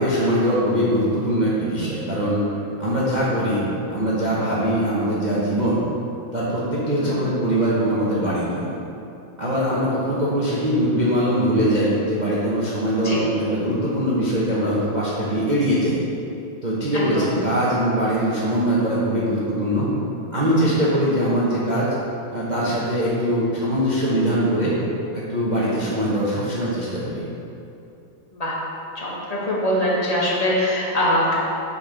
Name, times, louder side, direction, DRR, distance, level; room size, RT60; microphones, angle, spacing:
voice 1, 0.0-2.4 2.8-5.8 6.3-8.7 9.4-16.0 16.6-19.9 20.3-21.9 22.3-24.7 25.1-27.2, equal, 50° right, -8 dB, 0.5 m, -22 dB
voice 2, 7.0-7.4 13.0-13.2 16.9-17.3 20.4-20.7 25.5-25.9 28.3-28.5 28.9-31.4, equal, 35° left, -5 dB, 0.6 m, -24 dB
6.3 x 4.2 x 5.0 m, 2.8 s
omnidirectional pair, 2.2 m